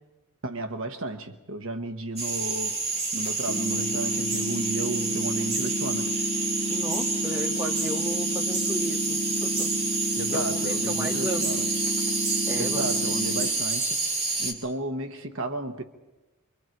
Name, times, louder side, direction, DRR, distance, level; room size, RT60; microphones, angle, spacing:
voice 1, 0.4-2.8 3.1-6.3 10.2-11.8 12.6-14.0 14.4-15.8, right 2 dB, 65° right, 1.2 m, -33 dB
sound 1, 2.2-14.5, right 3 dB, 30° right, 3.2 m, -28 dB
sound 2, 3.5-13.5, left 1 dB, 50° left, 1.1 m, -32 dB
voice 2, 6.7-9.7 10.3-11.6 12.5-13.2, equal, 10° right, 2.6 m, -35 dB
28.0 x 24.0 x 4.6 m
head